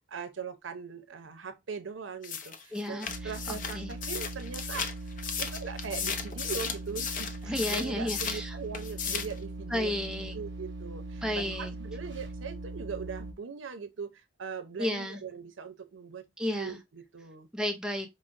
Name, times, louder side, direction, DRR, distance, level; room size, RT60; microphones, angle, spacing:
voice 1, 0.1-4.9 5.4-10.0 10.3-17.5, right 5 dB, 85° right, 0.6 m, -40 dB
sound 1, 2.2-8.4 8.7-9.4, left 7 dB, 45° left, 0.5 m, -35 dB
voice 2, 2.7-3.9 7.4-8.6 9.7-10.3 11.2-11.7 14.8-15.2 16.4-16.8 17.5-18.1, left 1 dB, 5° right, 0.6 m, -33 dB
sound 2, 3.1-13.3, right 2 dB, 65° right, 0.9 m, -40 dB
4.8 x 2.0 x 2.5 m
head